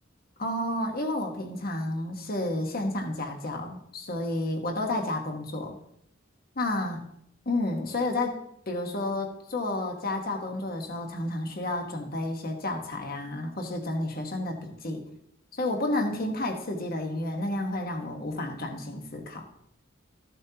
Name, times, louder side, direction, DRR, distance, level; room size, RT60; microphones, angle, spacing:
voice 1, 0.4-5.8 6.6-7.0 7.5-8.4 8.7-15.1 15.5-19.5, left 1 dB, 50° left, 3 dB, 1.3 m, -31 dB
14.0 x 7.5 x 2.9 m, 0.72 s
head